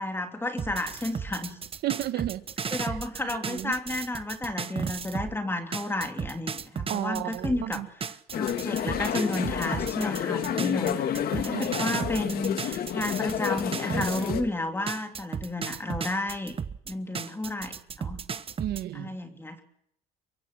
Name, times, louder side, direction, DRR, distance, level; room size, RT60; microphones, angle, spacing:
voice 1, 0.0-1.6 2.7-7.8 8.3-11.1 11.3-16.5 16.9-18.2 18.9-19.6, left 2 dB, 15° left, 6 dB, 3.2 m, -32 dB
sound 1, 0.6-5.3 5.7-14.5 14.9-18.8, right 6 dB, 35° right, 1.2 m, -35 dB
voice 2, 1.8-2.9 3.2-3.7 6.9-7.9 11.5-12.0 18.6-19.2, right 13 dB, 75° right, 12 dB, 1.4 m, -33 dB
sound 2, 8.3-14.4, left 10 dB, 65° left, 2.0 m, -30 dB
23.5 x 23.5 x 6.2 m, 0.76 s
cardioid pair, 110°, 17 cm